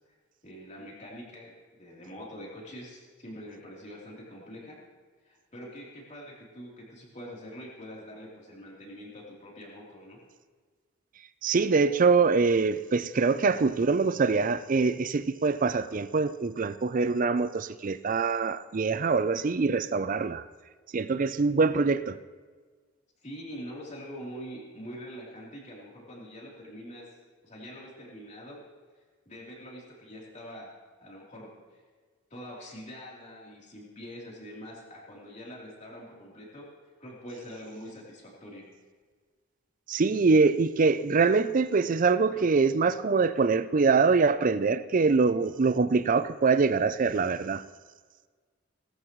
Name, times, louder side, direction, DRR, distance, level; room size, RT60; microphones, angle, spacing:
voice 1, 0.4-4.8 5.2-10.2 23.2-27.1 27.4-28.6 29.3-30.7 31.0-31.8 32.3-36.7 37.0-38.7, equal, 35° left, 3.5 m, -44 dB
voice 2, 11.4-20.4 20.9-22.2 39.9-47.6, right 4 dB, 40° right, 0.4 m, -24 dB
19.0 x 13.5 x 3.1 m
head